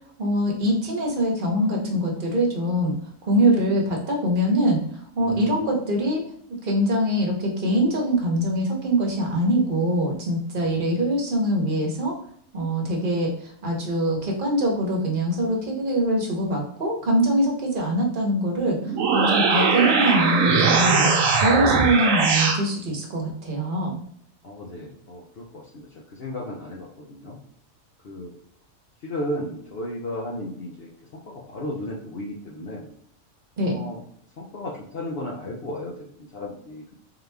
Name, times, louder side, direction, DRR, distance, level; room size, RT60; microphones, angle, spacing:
voice 1, 0.2-2.9 3.3-4.8 5.2-6.2 6.6-12.1 12.5-13.3 13.6-18.8 19.1-21.1 21.3-23.9 33.6-33.8, right 1 dB, 40° right, 0 dB, 1.0 m, -23 dB
voice 2, 5.2-5.6 10.6-11.0 24.4-27.4 28.0-28.3 29.0-32.9 33.6-34.0 34.4-36.9, left 1 dB, 55° left, -3 dB, 0.8 m, -35 dB
sound 1, 18.8-22.6, right 4 dB, 75° right, 1.0 m, -20 dB
3.9 x 2.9 x 3.4 m, 0.63 s
omnidirectional pair, 1.4 m